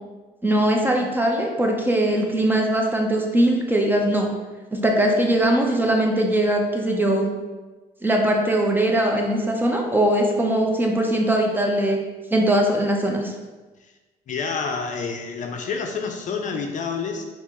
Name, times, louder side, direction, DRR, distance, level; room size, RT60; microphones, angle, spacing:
voice 1, 0.4-4.3 4.7-7.3 8.0-12.0 12.3-13.3, right 1 dB, 10° right, 1 dB, 0.6 m, -21 dB
voice 2, 14.3-17.2, left 5 dB, 50° left, 4 dB, 0.5 m, -28 dB
4.3 x 2.9 x 3.5 m, 1.3 s
cardioid pair, 110°, 17 cm